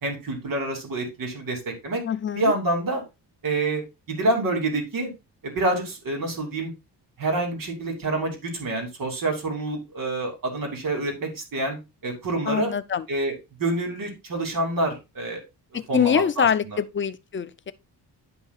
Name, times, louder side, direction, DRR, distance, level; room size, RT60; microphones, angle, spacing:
voice 1, 0.0-2.0 2.4-3.0 3.4-3.8 4.1-5.1 5.4-6.7 7.2-11.8 12.0-12.7 13.1-13.3 13.6-15.4 15.9-16.8, right 2 dB, 55° right, 2.9 m, -27 dB
voice 2, 2.0-2.5 12.5-13.1 15.7-17.7, left 8 dB, 30° left, 0.4 m, -24 dB
10.5 x 5.6 x 2.3 m
wide cardioid pair, 155°, 40 cm